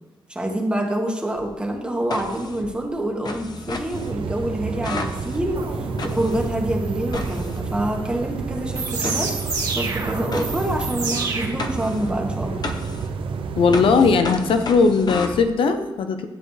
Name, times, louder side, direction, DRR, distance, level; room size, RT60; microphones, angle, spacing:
voice 1, 0.3-9.3 9.7-12.7, right 1 dB, 10° right, 0 dB, 1.5 m, -26 dB
sound 1, 1.4-8.2 9.0-15.4, left 3 dB, 50° left, 0.9 m, -35 dB
sound 2, 3.9-14.2, right 5 dB, 75° right, 0.7 m, -30 dB
sound 3, 5.3-11.5, right 3 dB, 45° right, 2.1 m, -30 dB
voice 2, 13.6-16.3, left 4 dB, 85° left, 8 dB, 0.7 m, -18 dB
10.5 x 8.8 x 3.3 m, 1.1 s
wide cardioid pair, 115°, 9 cm